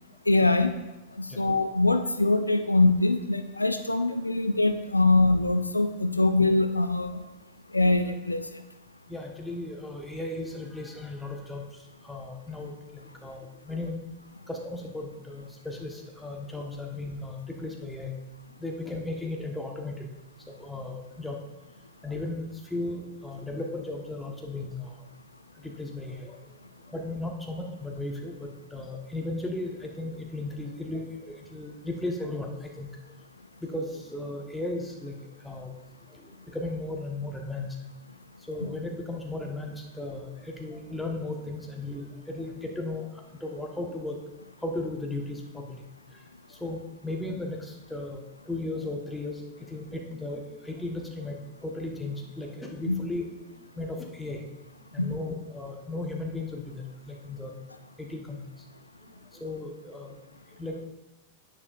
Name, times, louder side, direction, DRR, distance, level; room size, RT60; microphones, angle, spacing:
voice 1, 0.3-0.8 1.2-7.2 7.7-8.6 52.9-53.0 55.0-55.1, left 2 dB, 85° left, 9 dB, 0.4 m, -23 dB
voice 2, 9.1-11.7 12.0-14.0 14.5-18.1 18.6-20.1 20.5-21.4 22.0-25.0 25.6-26.4 26.9-32.9 33.6-35.2 35.4-35.7 36.1-37.7 38.5-44.2 44.6-45.8 46.5-48.2 48.5-53.2 53.8-54.4 54.9-57.5 58.0-58.4 59.3-60.2 60.6-60.8, left 2 dB, 5° left, 0 dB, 1.4 m, -36 dB
10.0 x 9.1 x 2.6 m, 1.0 s
figure-of-eight pair, 90°, 0 cm